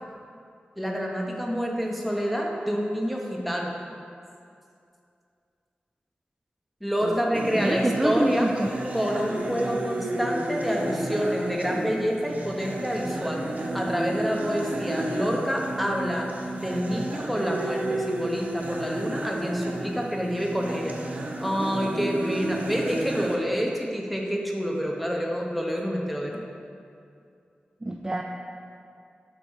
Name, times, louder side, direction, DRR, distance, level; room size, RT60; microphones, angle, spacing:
voice 1, 0.8-3.7 6.8-8.5 8.9-13.4 13.7-16.3 16.6-21.0 21.4-26.4, equal, ahead, -1 dB, 0.9 m, -28 dB
sound 1, 7.3-23.4, right 1 dB, 50° right, 0.7 m, -32 dB
voice 2, 7.5-9.2 27.8-28.2, right 1 dB, 20° right, 2 dB, 0.3 m, -26 dB
6.2 x 3.9 x 4.5 m, 2.4 s
cardioid pair, 60°, 4 cm